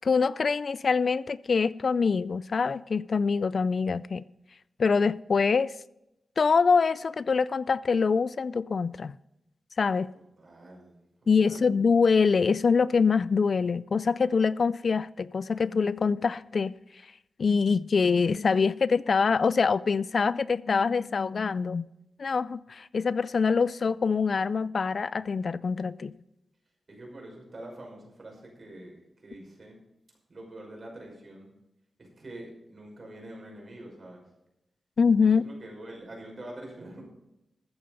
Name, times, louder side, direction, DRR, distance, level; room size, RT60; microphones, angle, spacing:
voice 1, 0.0-4.2 4.8-5.7 6.4-9.1 9.8-10.1 11.3-16.8 17.4-21.8 22.2-26.1 35.0-35.4, left 5 dB, 55° left, 0.3 m, -24 dB
voice 2, 10.1-11.0 11.4-11.7 26.9-29.8 30.3-31.5 32.0-34.2 35.2-37.0, right 1 dB, 45° right, 5.8 m, -45 dB
14.0 x 8.9 x 5.2 m
wide cardioid pair, 100°, 0 cm